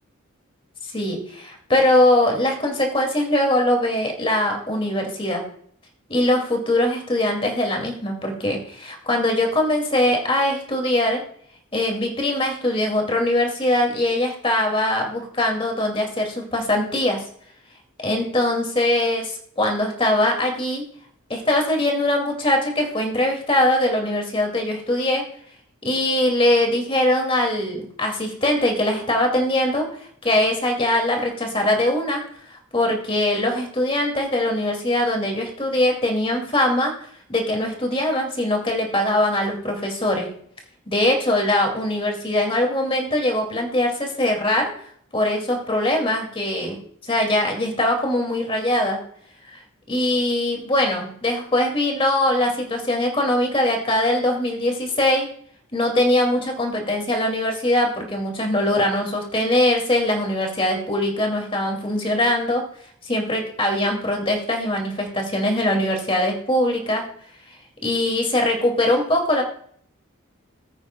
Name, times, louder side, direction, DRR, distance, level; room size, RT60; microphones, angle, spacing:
voice 1, 0.8-5.4 6.1-11.2 11.7-17.2 18.0-20.9 21.3-25.3 25.8-37.0 37.3-40.3 40.9-44.7 45.1-49.0 49.5-49.6 49.9-55.3 55.7-62.7 63.0-67.1 67.8-69.4, left 1 dB, 25° left, 2 dB, 2.3 m, -22 dB
19.5 x 8.6 x 2.2 m, 0.63 s
head